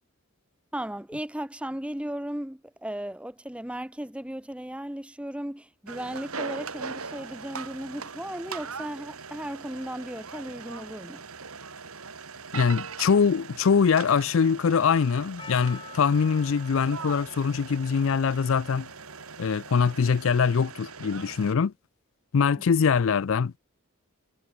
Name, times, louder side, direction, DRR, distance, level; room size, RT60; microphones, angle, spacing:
voice 1, 0.7-11.2, right 1 dB, 5° right, 0.7 m, -36 dB
sound 1, 5.9-21.5, right 5 dB, 80° right, 2.6 m, -40 dB
voice 2, 12.5-18.9 19.4-21.7 22.3-23.5, left 6 dB, 65° left, 0.4 m, -23 dB
Percussion, 15.4-20.6, left 4 dB, 20° left, 1.4 m, -49 dB
head